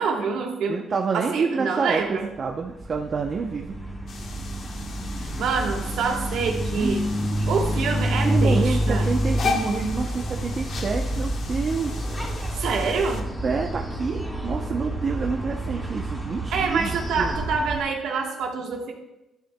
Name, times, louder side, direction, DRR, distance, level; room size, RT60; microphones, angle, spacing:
voice 1, 0.0-0.8 1.1-2.3 5.4-7.0 7.4-9.1 12.5-13.3 16.5-18.9, right 5 dB, 80° right, 1 dB, 1.3 m, -26 dB
voice 2, 0.7-3.8 6.8-7.0 7.3-7.6 8.2-12.1 13.4-17.4, right 5 dB, 45° right, 2 dB, 0.7 m, -28 dB
sound 1, 2.3-17.8, equal, 5° left, 2.4 m, -28 dB
sound 2, 4.1-13.2, left 5 dB, 60° left, 1.2 m, -36 dB
11.5 x 9.5 x 2.2 m, 0.93 s
cardioid pair, 90°, 0 cm